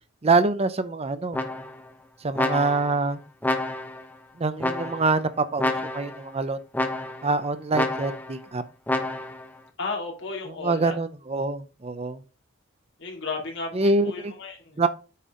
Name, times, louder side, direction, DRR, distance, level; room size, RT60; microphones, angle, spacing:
voice 1, 0.2-1.5 2.2-3.2 4.4-6.6 7.2-8.6 10.6-12.2 13.7-14.3 14.8-14.9, right 3 dB, 30° right, 12 dB, 0.6 m, -25 dB
sound 1, 1.3-1.9 2.3-3.0 3.4-4.1 4.6-5.2 5.6-6.2 6.7-7.3 7.7-8.4 8.9-9.5, left 1 dB, 10° left, 1.0 m, -28 dB
voice 2, 9.8-11.0 13.0-14.8, left 3 dB, 65° left, 0 dB, 2.9 m, -34 dB
8.5 x 5.4 x 3.7 m, 0.34 s
head